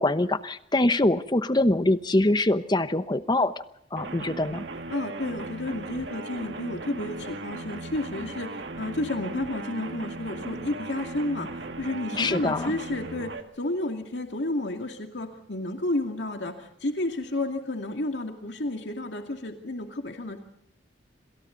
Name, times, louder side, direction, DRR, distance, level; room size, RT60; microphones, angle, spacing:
voice 1, 0.0-3.5 3.9-4.6 12.2-12.7, left 2 dB, 25° left, 12 dB, 1.0 m, -24 dB
sound 1, 4.0-13.4, right 2 dB, 70° right, 1.9 m, -37 dB
voice 2, 4.9-20.4, left 1 dB, 70° left, 4 dB, 2.4 m, -31 dB
27.5 x 26.5 x 4.0 m, 0.75 s
head